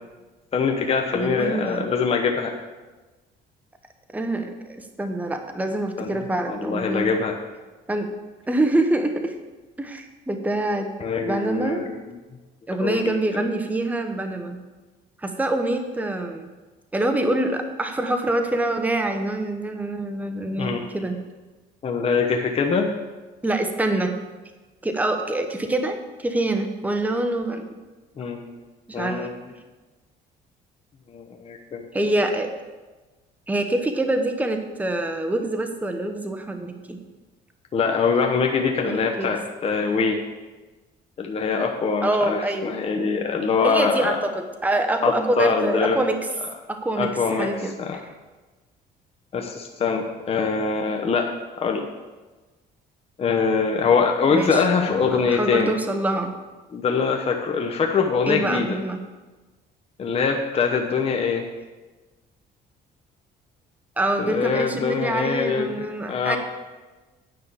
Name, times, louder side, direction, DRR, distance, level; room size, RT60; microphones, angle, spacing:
voice 1, 0.5-2.5 6.0-6.2 6.5-7.4 11.0-12.0 12.8-13.4 20.6-20.8 21.8-22.9 28.2-28.6 28.9-29.3 31.1-32.0 37.7-40.2 41.2-44.2 45.0-46.0 47.0-47.5 47.8-48.0 49.3-51.3 51.6-51.9 53.2-55.7 56.7-58.8 60.0-61.4 64.2-66.4, left 5 dB, 35° left, 2 dB, 1.0 m, -23 dB
voice 2, 1.1-1.9 4.1-7.1 7.9-8.1 8.5-9.3 9.8-10.9 11.1-11.8 12.7-14.6 15.2-16.5 16.9-21.2 23.4-24.1 24.8-27.6 28.9-29.3 31.9-32.5 33.5-37.0 38.9-39.3 42.0-43.1 43.4-46.2 46.7-47.8 54.3-56.3 58.3-59.0 64.0-66.4, right 2 dB, 10° right, 5 dB, 1.0 m, -25 dB
9.7 x 5.6 x 6.9 m, 1.2 s
cardioid pair, 110°, 17 cm